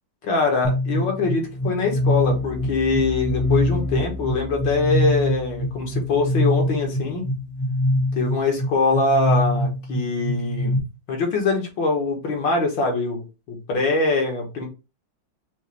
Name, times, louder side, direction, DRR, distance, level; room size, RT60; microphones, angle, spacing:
voice 1, 0.2-7.2 8.1-10.8 11.1-14.7, left 3 dB, 65° left, 1.9 m, -23 dB
sound 1, 0.6-10.8, left 1 dB, 85° left, 1.9 m, -24 dB
5.6 x 2.6 x 3.2 m
omnidirectional pair, 2.2 m